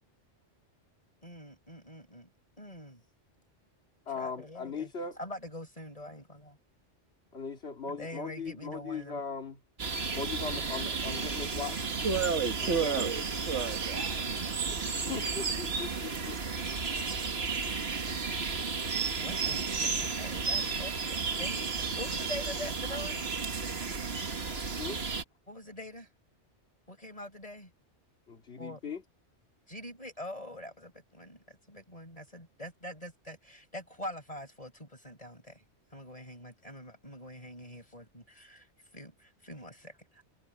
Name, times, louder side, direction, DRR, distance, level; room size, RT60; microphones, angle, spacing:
voice 1, 1.2-2.3 2.6-3.0 4.2-4.9 5.2-6.6 7.8-9.2 19.1-23.2 25.5-26.1 26.9-27.7 28.6-28.8 29.7-35.6 35.9-40.2, left 1 dB, 30° left, 6.0 m, -44 dB
voice 2, 4.1-5.2 7.3-9.6 10.1-11.9 12.6-13.1 14.7-14.8 15.1-16.4 24.8-25.0 28.3-29.0, left 5 dB, 65° left, 2.6 m, -39 dB
sound 1, 9.8-25.2, right 4 dB, 60° right, 1.8 m, -33 dB
voice 3, 12.0-14.2, right 5 dB, 85° right, 2.0 m, -31 dB
omnidirectional pair, 1.2 m